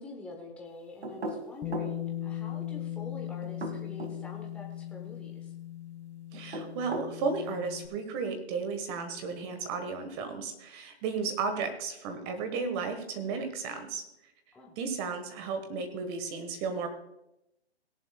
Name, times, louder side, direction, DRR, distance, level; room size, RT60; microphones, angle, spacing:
voice 1, 0.0-5.5 11.3-11.4 14.5-14.8, left 3 dB, 5° left, -1 dB, 0.9 m, -46 dB
sound 1, 1.0-2.0 3.4-4.2 6.3-7.2, right 1 dB, 75° right, 2.2 m, -36 dB
Bass guitar, 1.6-7.9, left 12 dB, 20° left, 1.9 m, -39 dB
voice 2, 6.3-14.0 14.8-16.9, right 4 dB, 25° right, 7 dB, 1.3 m, -34 dB
18.0 x 11.0 x 2.3 m, 0.85 s
hypercardioid pair, 145°, 33 cm